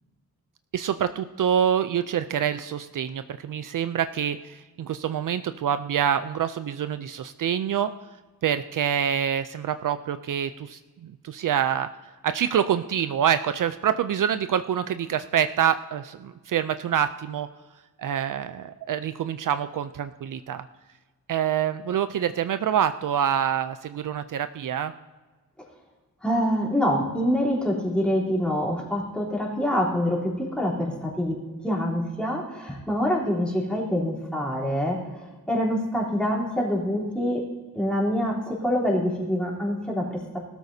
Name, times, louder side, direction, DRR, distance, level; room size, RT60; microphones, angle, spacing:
voice 1, 0.7-7.9 8.4-11.9 12.2-17.5 18.0-20.6 21.3-24.9, right 9 dB, 60° right, 11 dB, 0.5 m, -26 dB
voice 2, 26.2-37.4 37.7-40.2, equal, 5° left, -5 dB, 3.4 m, -26 dB
19.5 x 13.0 x 2.7 m, 1.3 s
wide cardioid pair, 145°, 36 cm